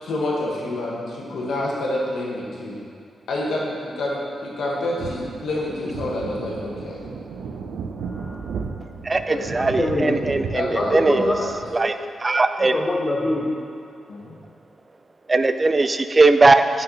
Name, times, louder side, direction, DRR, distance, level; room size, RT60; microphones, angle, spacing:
voice 1, 0.0-2.8 3.3-7.0 9.3-9.5 10.5-11.5 14.1-14.4, left 1 dB, 80° left, -4 dB, 1.7 m, -28 dB
sound 1, 5.0-11.7, right 5 dB, 90° right, 0.5 m, -34 dB
voice 2, 8.1-8.5 9.6-10.2 10.7-11.4 11.8-11.9 12.6-13.4, left 1 dB, 20° left, -1 dB, 1.1 m, -25 dB
voice 3, 9.0-11.3 11.7-11.9 12.2-12.8 15.3-16.8, right 3 dB, 25° right, 9 dB, 0.3 m, -19 dB
8.9 x 6.0 x 4.2 m, 2.3 s
wide cardioid pair, 135°, 0 cm